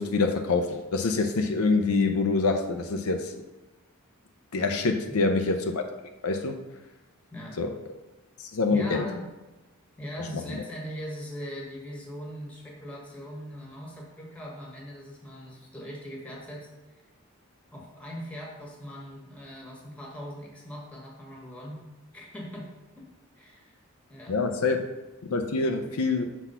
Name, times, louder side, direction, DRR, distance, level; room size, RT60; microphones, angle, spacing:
voice 1, 0.0-3.3 4.5-5.8 6.2-6.6 7.6-7.7 8.4-9.0 10.5-10.6 24.3-24.8 25.3-26.2, left 3 dB, 70° left, 5 dB, 0.6 m, -25 dB
voice 2, 8.7-9.2 10.0-16.7 17.7-21.8 22.1-22.7 22.9-23.1 23.4-23.8 24.1-24.3, equal, 5° left, -2 dB, 1.4 m, -40 dB
5.9 x 4.1 x 5.6 m, 1.1 s
head